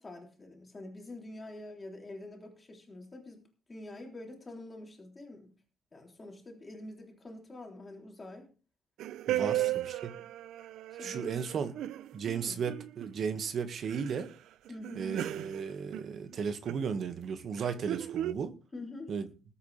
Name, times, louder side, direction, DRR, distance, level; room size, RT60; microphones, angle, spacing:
voice 1, 0.0-3.4 3.7-5.5 5.9-8.5 9.3-9.7 10.1-10.3 10.9-11.4 12.4-12.6 14.7-15.1 18.7-19.1, left 2 dB, 20° left, 3.4 m, -46 dB
sound 1, 9.0-13.2 13.4-13.5 13.9-14.2 14.7-16.4 16.7-16.9 17.6-18.3, right 14 dB, 90° right, 0.6 m, -36 dB
voice 2, 9.3-10.1 11.0-11.7 12.1-14.3 15.0-18.5 19.1-19.3, right 6 dB, 45° right, 1.7 m, -35 dB
20.5 x 8.6 x 3.4 m
cardioid pair, 165°, 0 cm